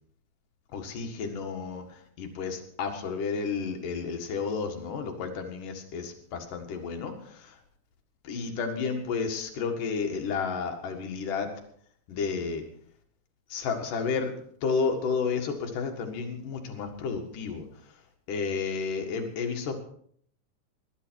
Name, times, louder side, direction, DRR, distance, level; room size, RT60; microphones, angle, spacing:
voice 1, 0.7-7.6 8.2-11.5 12.1-12.6 13.5-14.3 14.6-17.7 18.3-19.8, left 5 dB, 75° left, 4 dB, 3.5 m, -31 dB
20.5 x 11.5 x 4.6 m, 0.63 s
omnidirectional pair, 3.8 m